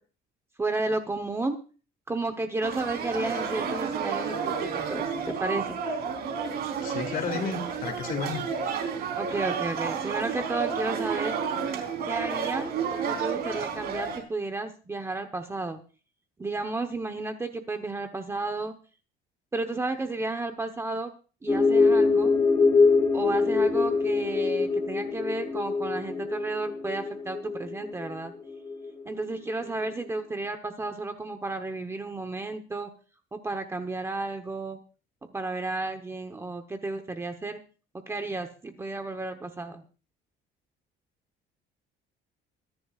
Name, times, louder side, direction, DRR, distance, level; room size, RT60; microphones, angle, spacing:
voice 1, 0.6-1.5 2.1-5.8 9.2-11.4 12.0-15.8 16.4-18.8 19.5-21.1 21.4-22.3 23.1-28.3 29.0-32.9 33.3-34.8 35.3-37.6 38.1-39.8, right 2 dB, 10° right, 1.0 m, -32 dB
sound 1, 2.6-14.2, right 6 dB, 50° right, 4.0 m, -31 dB
voice 2, 6.8-8.4, left 5 dB, 45° left, 2.5 m, -32 dB
sound 2, 21.5-29.2, left 4 dB, 15° left, 2.6 m, -24 dB
24.0 x 11.0 x 2.4 m
cardioid pair, 175°, 21 cm